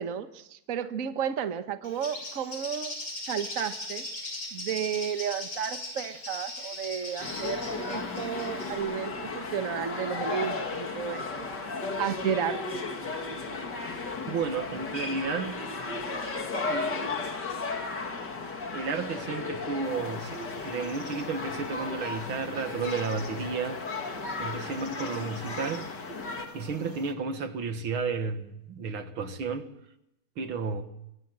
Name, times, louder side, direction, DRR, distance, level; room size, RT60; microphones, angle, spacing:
voice 1, 0.0-3.0 3.3-4.1 4.5-11.5 12.0-12.8, right 8 dB, 45° right, 1.5 m, -33 dB
Bird, 1.8-8.7, left 1 dB, 80° left, 6.8 m, -39 dB
sound 1, 7.2-26.5, left 3 dB, 55° left, 3.2 m, -35 dB
voice 2, 14.3-15.6 16.7-17.3 18.7-23.8 24.4-25.9 26.5-29.7 30.4-30.8, right 5 dB, 85° right, 2.4 m, -32 dB
sound 2, 19.8-27.1, left 3 dB, 35° left, 2.3 m, -47 dB
25.0 x 24.5 x 7.6 m
omnidirectional pair, 2.2 m